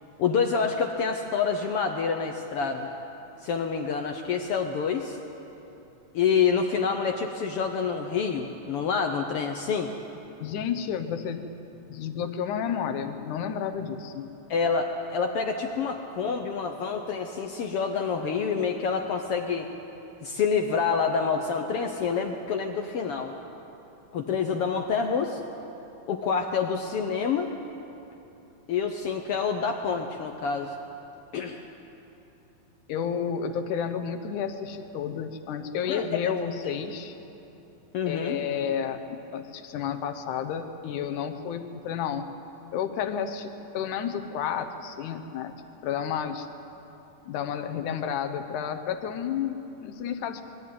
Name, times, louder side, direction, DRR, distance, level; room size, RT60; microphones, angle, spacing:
voice 1, 0.2-2.9 3.4-5.2 6.1-9.9 14.5-19.7 20.2-23.3 24.1-25.4 26.1-27.5 28.7-30.7 31.3-31.6 35.9-36.3 36.6-36.7 37.9-38.4, left 6 dB, 70° left, 4 dB, 1.5 m, -27 dB
voice 2, 10.4-11.4 11.7-14.3 32.9-37.1 38.1-42.3 42.7-45.6 45.8-46.5 47.3-50.4, left 8 dB, 85° left, 7 dB, 2.5 m, -31 dB
22.0 x 13.5 x 9.4 m, 3.0 s
omnidirectional pair, 3.4 m